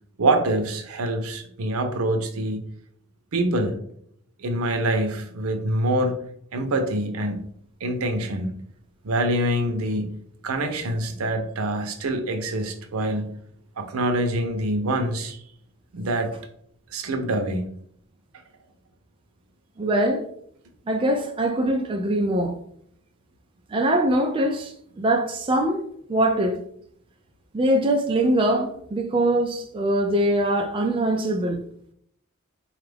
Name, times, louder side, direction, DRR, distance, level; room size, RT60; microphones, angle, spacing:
voice 1, 0.2-2.6 3.3-3.8 4.4-6.2 6.5-7.4 7.8-8.5 9.0-10.1 10.4-13.3 13.8-15.4 15.9-16.3 16.9-17.7, right 1 dB, 85° right, 0.6 m, -25 dB
voice 2, 19.8-20.2 20.9-22.6 23.7-25.8 26.1-26.6 27.5-31.6, right 1 dB, 25° right, 0.3 m, -22 dB
4.3 x 2.4 x 3.4 m
head